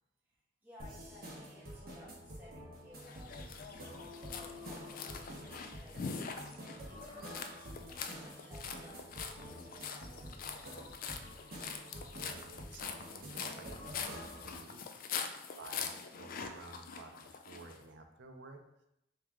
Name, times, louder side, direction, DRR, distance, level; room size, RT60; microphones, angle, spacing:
voice 1, 0.2-6.3 6.8-11.1 15.2-15.5, left 1 dB, 10° right, -7 dB, 1.2 m, -59 dB
sound 1, 0.8-14.5, equal, 50° right, 1.0 m, -49 dB
sound 2, 3.0-17.8, left 6 dB, 50° left, 0.3 m, -44 dB
sound 3, 3.7-6.3, left 4 dB, 90° left, 1.0 m, -53 dB
voice 2, 11.9-13.8 14.1-14.8 15.5-18.6, right 3 dB, 75° right, 4 dB, 0.5 m, -53 dB
3.5 x 3.2 x 3.5 m, 0.83 s
head